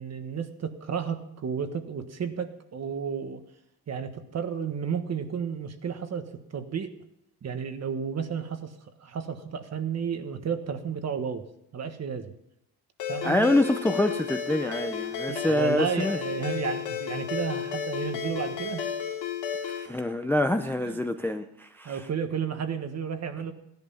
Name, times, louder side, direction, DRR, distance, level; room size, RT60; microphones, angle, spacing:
voice 1, 0.0-3.4 3.9-6.9 7.4-8.7 9.0-11.4 11.7-12.3 13.1-13.5 15.3-18.9 20.8-21.0 21.8-23.5, right 7 dB, 40° right, 8 dB, 1.4 m, -32 dB
Ringtone, 13.0-19.9, left 8 dB, 85° left, 2.5 m, -33 dB
voice 2, 13.2-16.2 19.6-22.0, left 1 dB, 5° left, 7 dB, 0.5 m, -26 dB
16.0 x 11.0 x 5.7 m, 0.80 s
cardioid pair, 130°, 40 cm